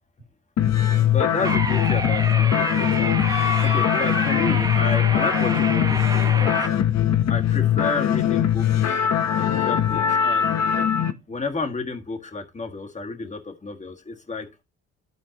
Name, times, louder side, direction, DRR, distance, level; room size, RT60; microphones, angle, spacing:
sound 1, 0.6-11.1, left 10 dB, 60° left, 0.9 m, -21 dB
voice 1, 1.1-3.1 3.6-6.7 7.3-9.0 9.4-10.6 11.3-14.5, left 3 dB, 25° left, 1.6 m, -31 dB
sound 2, 1.4-6.7, right 2 dB, 10° right, 0.8 m, -28 dB
12.5 x 4.4 x 2.9 m
cardioid pair, 90°, 30 cm